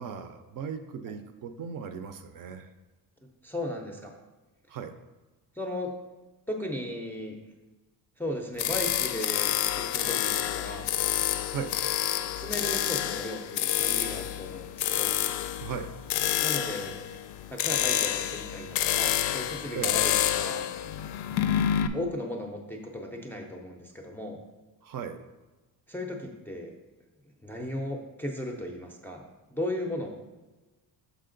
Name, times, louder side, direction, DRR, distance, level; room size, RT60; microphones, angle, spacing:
voice 1, 0.0-2.7 4.7-4.9 11.5-11.7 15.6-15.9 19.7-20.0 24.8-25.2, right 7 dB, 55° right, 8 dB, 0.5 m, -37 dB
voice 2, 3.4-4.1 5.6-5.9 6.5-7.3 8.2-10.9 12.4-15.2 16.4-16.9 17.5-20.7 21.9-24.4 25.9-26.7 27.4-29.2 29.5-30.1, left 1 dB, 5° left, 0 dB, 0.4 m, -36 dB
sound 1, 8.6-21.9, left 11 dB, 90° left, 0.5 m, -28 dB
6.7 x 4.9 x 3.8 m, 1.2 s
cardioid pair, 175°, 40 cm